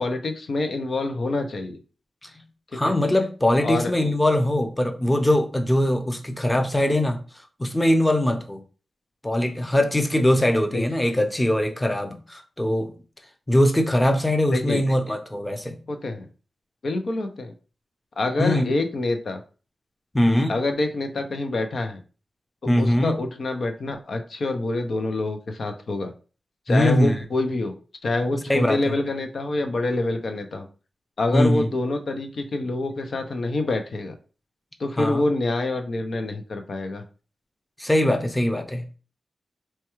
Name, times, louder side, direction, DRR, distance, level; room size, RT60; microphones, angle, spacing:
voice 1, 0.0-1.8 2.8-2.9 3.6-3.9 10.7-10.8 14.5-14.8 15.9-16.3 16.8-17.5 18.2-19.4 20.5-22.0 22.8-26.1 26.7-27.7 28.0-30.7 31.2-34.1 34.8-37.0, left 2 dB, 70° left, 0.6 m, -26 dB
voice 2, 2.7-7.2 7.6-8.6 9.2-12.9 13.5-15.8 18.4-18.7 20.1-20.6 22.7-23.2 26.7-27.2 28.5-28.9 31.3-31.7 35.0-35.2 37.8-39.0, left 1 dB, 15° left, 0.6 m, -21 dB
4.3 x 2.3 x 3.0 m
cardioid pair, 55°, 0 cm